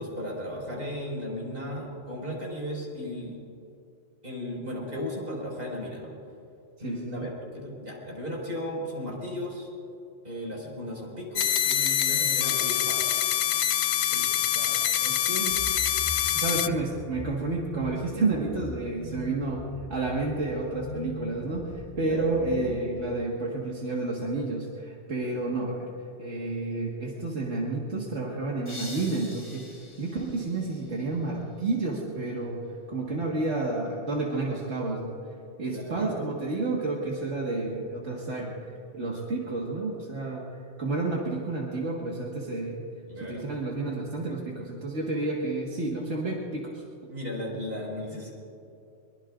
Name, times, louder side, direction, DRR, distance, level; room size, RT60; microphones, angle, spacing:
voice 1, 0.0-3.4 4.2-6.1 6.8-9.7 10.2-13.3 22.0-22.3 33.5-33.7 35.6-36.1 43.1-43.5 47.1-48.3, left 1 dB, 50° right, -3 dB, 5.3 m, -35 dB
voice 2, 6.8-7.3 14.1-15.6 16.3-19.6 19.9-25.9 26.2-29.7 30.0-32.6 32.9-35.1 35.6-40.5 40.8-42.8 43.3-46.8, right 2 dB, 85° right, -3 dB, 2.0 m, -30 dB
sound 1, 11.4-16.7, left 10 dB, 75° left, 0.9 m, -25 dB
sound 2, 15.5-23.1, left 1 dB, 40° left, 3.1 m, -40 dB
sound 3, 28.7-31.4, left 1 dB, 10° left, 4.8 m, -45 dB
23.0 x 23.0 x 2.5 m, 2.7 s
omnidirectional pair, 1.2 m